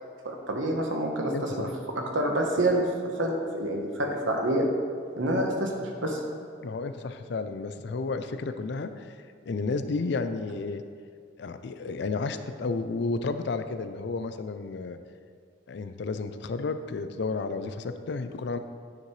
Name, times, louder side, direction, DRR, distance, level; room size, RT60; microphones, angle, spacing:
voice 1, 0.2-1.7 1.9-4.7 5.2-6.2, right 1 dB, 85° right, 1 dB, 1.2 m, -27 dB
voice 2, 1.3-1.7 6.6-9.2 9.5-10.8 11.4-15.0 15.7-18.6, left 3 dB, 60° left, 10 dB, 0.4 m, -32 dB
9.1 x 6.6 x 3.2 m, 2.1 s
head